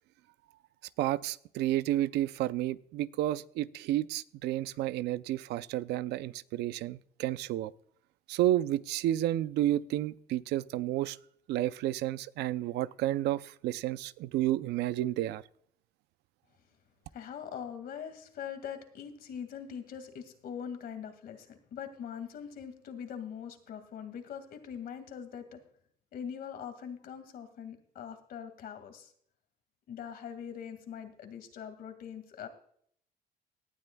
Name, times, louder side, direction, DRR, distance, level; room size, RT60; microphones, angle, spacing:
voice 1, 1.0-7.7 8.3-11.2 11.5-15.4, right 14 dB, 80° right, 0.5 m, -31 dB
voice 2, 17.1-25.6 26.1-29.1 29.9-32.5, left 8 dB, 65° left, 2.1 m, -42 dB
18.5 x 12.0 x 2.3 m
cardioid pair, 110°, 17 cm